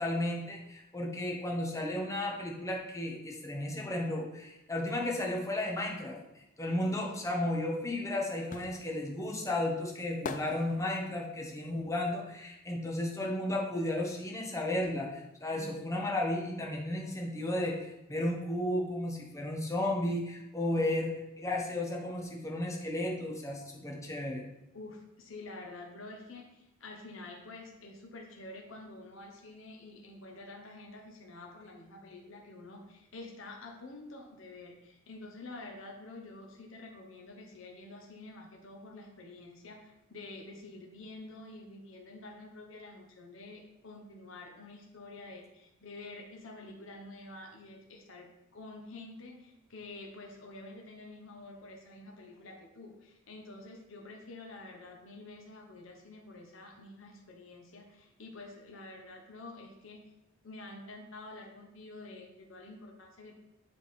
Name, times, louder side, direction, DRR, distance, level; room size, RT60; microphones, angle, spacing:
voice 1, 0.0-6.2 6.6-24.4, left 1 dB, 15° left, -1 dB, 1.3 m, -33 dB
voice 2, 7.0-7.5 15.5-15.9 20.7-21.0 24.7-48.3 48.5-60.1 60.4-63.3, left 2 dB, 70° left, 1 dB, 1.1 m, -48 dB
sound 1, 7.6-13.5 13.8-15.4 15.6-15.7, left 4 dB, 40° left, 0.5 m, -45 dB
8.0 x 3.7 x 4.9 m, 0.88 s
head